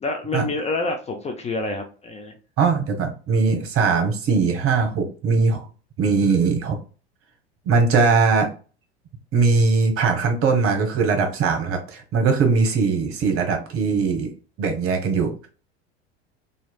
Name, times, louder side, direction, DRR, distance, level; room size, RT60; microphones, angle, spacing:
voice 1, 0.0-2.3, left 2 dB, 20° left, 4 dB, 0.5 m, -27 dB
voice 2, 2.6-5.7 6.0-6.8 7.6-8.5 9.3-14.3 14.6-15.5, right 4 dB, 40° right, 4 dB, 1.1 m, -20 dB
3.0 x 2.7 x 2.2 m, 0.36 s
hypercardioid pair, 75°, 33 cm